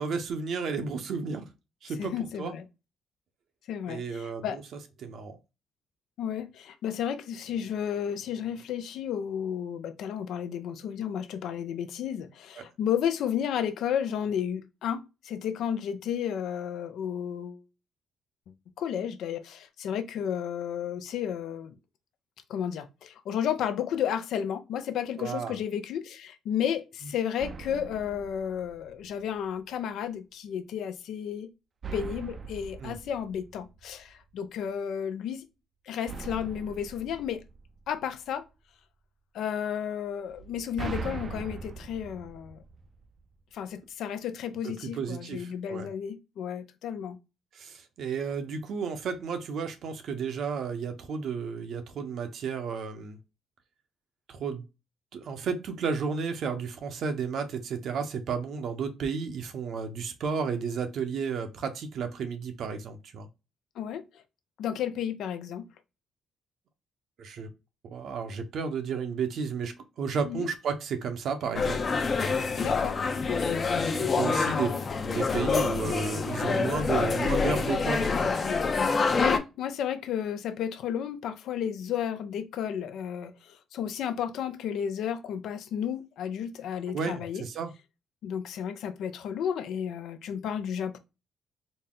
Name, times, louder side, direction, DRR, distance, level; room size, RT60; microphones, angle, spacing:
voice 1, 0.0-1.4 1.8-2.1 2.4-2.5 3.9-4.6 5.0-5.4 12.6-12.7 25.2-25.5 32.8-33.0 44.6-45.9 47.5-53.2 54.3-54.6 55.1-63.3 67.2-67.5 67.8-71.8 74.1-74.7 75.0-78.3 86.9-87.7, right 5 dB, 70° right, 0.8 m, -32 dB
voice 2, 2.0-2.6 3.7-4.6 6.2-17.6 18.8-21.7 22.5-31.5 31.9-35.5 35.9-37.4 37.9-38.4 39.3-42.6 43.5-47.2 63.8-64.2 64.6-65.6 70.3-70.5 72.6-73.0 73.3-73.6 74.3-74.8 79.1-87.4 88.2-91.0, left 9 dB, 80° left, 0.6 m, -32 dB
sound 1, 27.4-29.3 31.8-34.2 36.1-38.3 40.3-43.3, right 4 dB, 40° right, 0.5 m, -41 dB
sound 2, 71.5-79.4, left 4 dB, 40° left, 0.7 m, -27 dB
4.1 x 2.1 x 3.7 m
cardioid pair, 90°, 0 cm